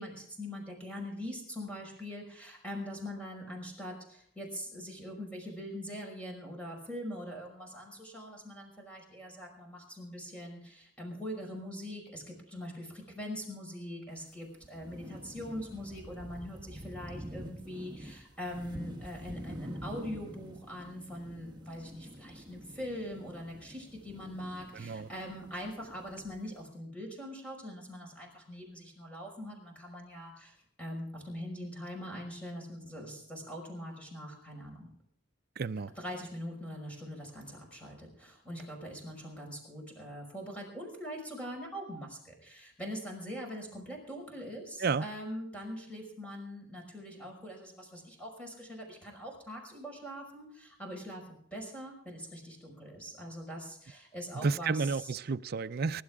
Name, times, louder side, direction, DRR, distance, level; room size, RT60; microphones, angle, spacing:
voice 1, 0.0-34.9 36.0-55.1, equal, 5° left, 5.5 m, -42 dB
sound 1, 14.2-14.3 14.5-26.6, equal, 25° right, 1.3 m, -47 dB
voice 2, 24.7-25.1 35.6-35.9 44.8-45.1 54.4-56.0, right 4 dB, 55° right, 0.5 m, -31 dB
24.5 x 12.0 x 3.6 m
head